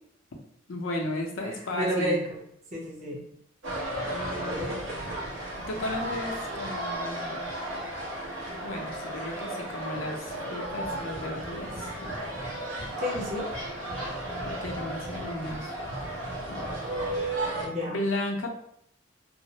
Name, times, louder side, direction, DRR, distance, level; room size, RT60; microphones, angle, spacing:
voice 1, 0.7-2.2 5.5-7.4 8.5-12.1 14.5-15.7 16.5-16.6 17.1-17.3 17.9-18.5, left 1 dB, 85° left, 1 dB, 0.6 m, -34 dB
voice 2, 1.8-2.4 2.7-3.2 4.4-4.7 13.0-13.4 17.6-18.0, equal, 35° right, -4 dB, 0.7 m, -30 dB
sound 1, 3.6-17.7, right 1 dB, 80° right, 0.8 m, -34 dB
2.4 x 2.0 x 2.8 m, 0.74 s
head